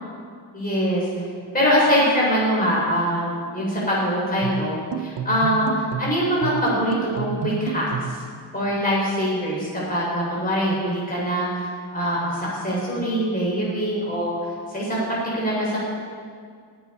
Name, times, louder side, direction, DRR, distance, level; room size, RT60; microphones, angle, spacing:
voice 1, 0.5-1.0 1.5-8.2 8.5-11.6 11.9-14.4 14.7-15.8, equal, 20° left, -6 dB, 4.0 m, -23 dB
sound 1, 4.4-8.3, right 6 dB, 85° right, 0.8 m, -30 dB
19.5 x 7.0 x 5.5 m, 2.1 s
wide cardioid pair, 120°, 41 cm